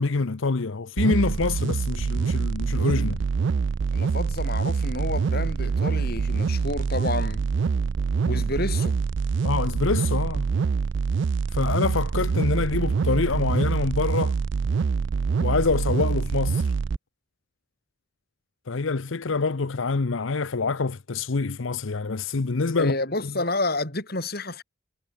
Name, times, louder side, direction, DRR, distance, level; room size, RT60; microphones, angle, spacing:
voice 1, 0.0-3.2 8.3-8.4 9.4-10.5 11.5-14.4 15.4-16.7 18.7-23.0 23.2-23.3, left 4 dB, 70° left, 0.7 m, -26 dB
sound 1, 1.0-17.0, right 5 dB, 60° right, 0.4 m, -25 dB
voice 2, 3.9-7.5 8.3-9.0 22.8-24.6, left 2 dB, 45° left, 4.8 m, -29 dB
head